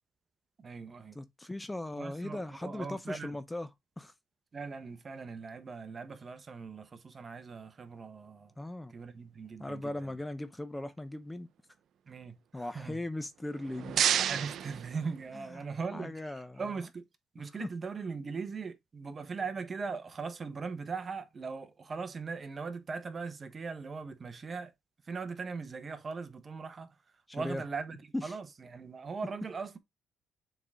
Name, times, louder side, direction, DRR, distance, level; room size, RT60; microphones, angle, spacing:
voice 1, 0.6-1.2 1.9-3.4 4.5-8.5 8.9-10.1 12.1-13.0 14.2-17.0 17.3-24.7 25.0-26.9 27.3-29.8, right 4 dB, 35° right, 1.2 m, -40 dB
voice 2, 1.1-3.7 4.0-4.1 8.6-8.9 9.6-11.5 12.5-14.0 15.3-15.6 15.9-16.7 17.6-17.7 27.3-27.6 28.1-28.4, left 1 dB, 10° left, 0.7 m, -38 dB
sound 1, 13.4-15.6, right 9 dB, 70° right, 0.5 m, -32 dB
6.9 x 3.9 x 3.7 m
cardioid pair, 90°, 0 cm